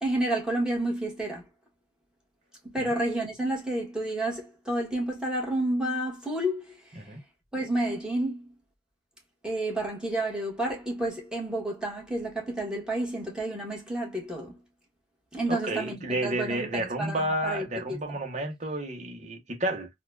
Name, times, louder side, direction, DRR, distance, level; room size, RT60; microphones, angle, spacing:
voice 1, 0.0-1.4 2.7-6.8 7.5-8.5 9.4-14.5 15.3-18.0, right 1 dB, 5° right, 1.4 m, -30 dB
voice 2, 15.5-19.9, right 1 dB, 40° right, 1.0 m, -31 dB
4.1 x 2.4 x 2.5 m
head